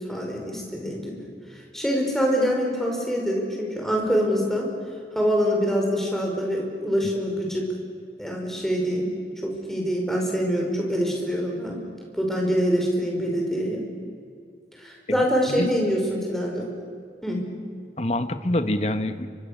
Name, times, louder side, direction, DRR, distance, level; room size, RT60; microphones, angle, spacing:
voice 1, 0.1-1.2 1.7-4.7 5.1-7.7 8.2-9.1 9.4-11.8 12.2-13.9 14.8-16.7 17.2-17.4, equal, ahead, -1 dB, 5.2 m, -25 dB
voice 2, 15.1-15.7 18.0-19.3, left 1 dB, 35° left, 9 dB, 1.3 m, -26 dB
29.5 x 25.0 x 6.8 m, 2.3 s
head